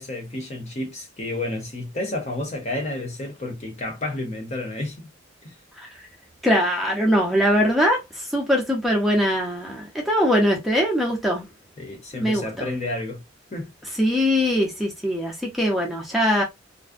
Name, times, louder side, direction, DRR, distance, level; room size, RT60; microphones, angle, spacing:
voice 1, 0.0-5.1 5.4-5.5 11.8-13.2 13.5-13.7, left 2 dB, 35° left, 0.7 m, -30 dB
voice 2, 6.4-11.4 12.1-12.7 14.0-16.4, equal, ahead, 0.5 m, -22 dB
2.5 x 2.0 x 2.4 m
head